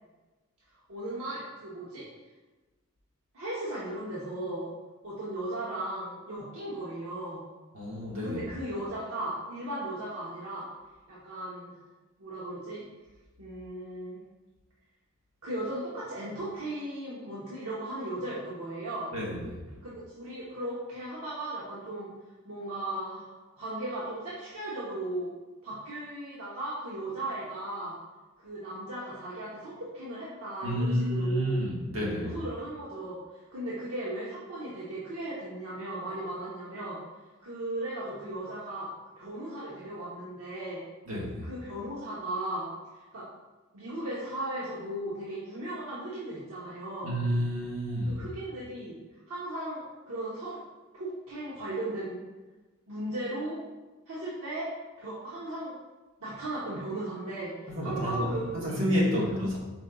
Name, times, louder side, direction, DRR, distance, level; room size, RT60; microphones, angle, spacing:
voice 1, 0.9-2.1 3.3-4.7 5.0-7.4 8.2-10.7 11.1-11.8 12.2-12.9 13.4-14.2 15.4-19.1 19.8-22.1 22.4-23.3 23.6-25.3 25.6-28.0 28.4-31.7 32.2-37.0 37.4-38.9 39.2-40.8 41.4-43.3 43.7-47.1 48.1-49.0 49.3-50.6 50.9-52.2 52.9-53.6 54.1-54.7 55.0-55.7 56.2-59.3, right 1 dB, 90° right, -8 dB, 0.9 m, -36 dB
voice 2, 7.7-8.4 19.1-19.6 30.6-32.3 41.0-41.5 47.0-48.2 57.7-59.6, equal, 70° right, -5 dB, 1.4 m, -30 dB
5.2 x 3.8 x 2.3 m, 1.2 s
head